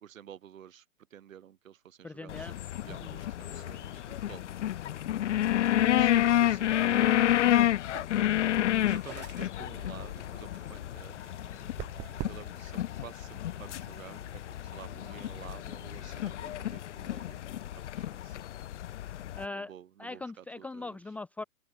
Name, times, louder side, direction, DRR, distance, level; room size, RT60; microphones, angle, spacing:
voice 1, 0.0-0.8 1.1-2.6 2.8-4.4 5.8-7.3 8.8-11.3 12.3-14.2 14.5-18.4 19.5-21.0, right 10 dB, 70° right, 2.0 m, -50 dB
voice 2, 2.0-2.5 2.9-3.2 19.0-19.7 20.0-21.4, left 3 dB, 5° left, 0.8 m, -41 dB
sound 1, 2.3-19.4, left 12 dB, 60° left, 1.1 m, -30 dB
Engine, 3.5-18.4, right 19 dB, 40° right, 6.8 m, -60 dB
sound 2, 6.5-12.7, right 20 dB, 25° right, 4.2 m, -47 dB
open air
hypercardioid pair, 145°, 41 cm